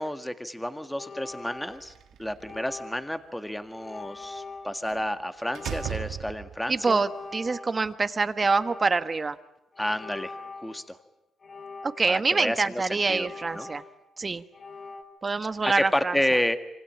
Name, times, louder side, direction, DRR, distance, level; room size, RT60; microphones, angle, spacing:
voice 1, 0.0-1.9 2.2-7.0 9.8-10.3 10.6-11.0 12.0-13.3 13.6-13.7 15.8-16.6, left 1 dB, 5° left, 9 dB, 1.8 m, -30 dB
sound 1, 1.0-2.0 2.4-3.2 3.7-4.8 5.4-6.3 6.8-8.0 8.4-9.2 9.7-10.8 11.4-12.3 12.9-14.1 14.5-15.0, left 3 dB, 45° left, 5.5 m, -43 dB
Slam, 1.7-2.7 4.9-5.1 5.5-6.8, right 10 dB, 75° right, 1.4 m, -36 dB
voice 2, 6.7-9.4 11.8-13.8 14.2-14.4 15.2-16.2, right 4 dB, 30° right, 12 dB, 1.3 m, -25 dB
26.5 x 25.0 x 8.7 m, 0.86 s
cardioid pair, 90°, 0 cm